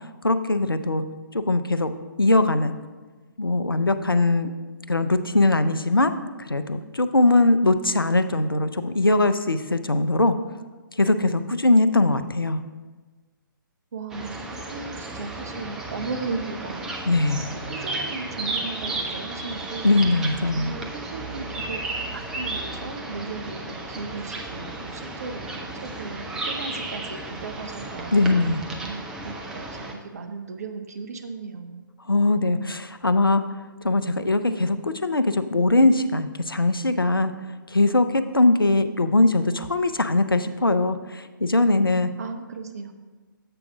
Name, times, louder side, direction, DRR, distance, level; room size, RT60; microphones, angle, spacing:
voice 1, 0.2-1.0 1.3-1.9 2.2-2.7 3.4-4.5 4.9-6.1 6.4-10.3 11.0-12.6 17.1-17.5 19.8-20.7 28.1-28.6 32.1-33.4 33.8-37.3 37.7-42.1, left 2 dB, 85° left, 10 dB, 0.5 m, -21 dB
voice 2, 13.9-17.0 17.7-19.9 20.4-21.8 22.1-28.3 28.8-32.0 42.2-42.9, right 4 dB, 45° right, 7 dB, 0.7 m, -36 dB
sound 1, 14.1-29.9, right 2 dB, 5° right, 0.3 m, -34 dB
7.8 x 4.7 x 4.7 m, 1.3 s
figure-of-eight pair, 135°, 12 cm